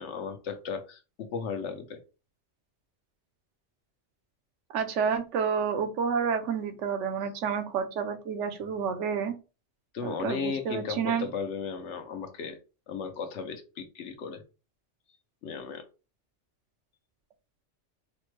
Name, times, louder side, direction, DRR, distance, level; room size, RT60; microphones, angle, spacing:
voice 1, 0.0-2.0 8.8-8.9 9.9-12.6 12.9-14.4 15.4-15.8, left 5 dB, 75° left, 1.0 m, -35 dB
voice 2, 4.7-9.3 10.0-11.3, right 6 dB, 80° right, 1.0 m, -29 dB
5.0 x 2.1 x 3.1 m
omnidirectional pair, 1.2 m